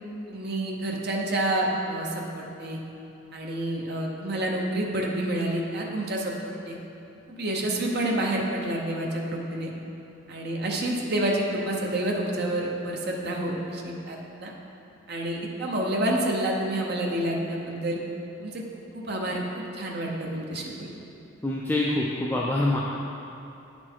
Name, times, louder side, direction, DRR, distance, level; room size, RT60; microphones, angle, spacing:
voice 1, 0.3-2.8 3.3-6.8 7.3-9.7 10.3-14.5 15.1-18.0 18.4-21.0, right 1 dB, 55° right, -1 dB, 0.8 m, -29 dB
voice 2, 21.4-22.8, left 1 dB, 10° left, -4 dB, 0.4 m, -25 dB
9.2 x 4.4 x 4.4 m, 2.8 s
head